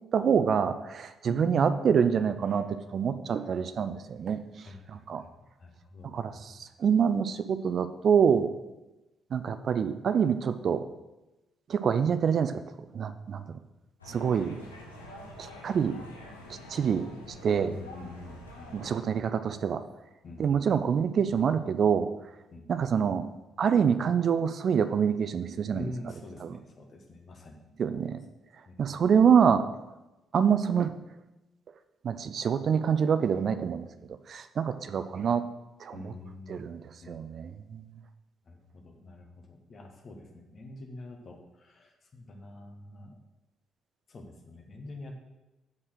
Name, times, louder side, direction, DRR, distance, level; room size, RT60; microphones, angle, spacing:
voice 1, 0.1-4.4 4.9-5.2 6.0-8.5 9.3-10.8 11.7-12.6 12.9-13.6 14.1-14.6 15.4-16.0 16.7-17.1 17.4-17.7 18.7-19.8 20.4-22.1 22.7-23.3 23.6-25.9 26.4-26.5 27.8-28.2 28.8-29.7 30.3-30.9 32.0-33.9 34.3-35.4 35.8-36.1 36.5-36.8 37.1-37.8, right 7 dB, 50° right, 12 dB, 0.5 m, -26 dB
voice 2, 1.3-1.9 4.6-5.0 5.6-6.6 17.6-19.2 20.2-20.8 22.5-22.7 23.0-23.1 25.7-27.7 28.7-29.0 35.9-36.6 37.0-37.2 38.5-43.2 44.1-45.2, left 2 dB, 45° left, 2 dB, 1.4 m, -44 dB
sound 1, 14.0-19.0, left 1 dB, 85° left, 0.9 m, -46 dB
6.7 x 5.5 x 6.5 m, 1.0 s
figure-of-eight pair, 40°, 0 cm